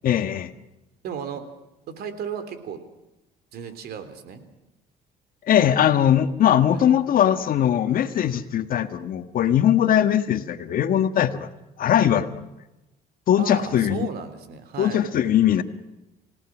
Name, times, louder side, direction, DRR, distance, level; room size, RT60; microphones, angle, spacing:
voice 1, 0.0-0.5 5.5-11.5 11.8-12.5 13.3-14.1 14.8-15.6, left 10 dB, 55° left, 10 dB, 1.5 m, -20 dB
voice 2, 1.0-1.4 1.9-2.8 3.5-4.4 6.7-6.9 13.4-15.1, right 7 dB, 70° right, 9 dB, 3.4 m, -34 dB
28.0 x 17.5 x 6.1 m, 0.97 s
cardioid pair, 110°, 17 cm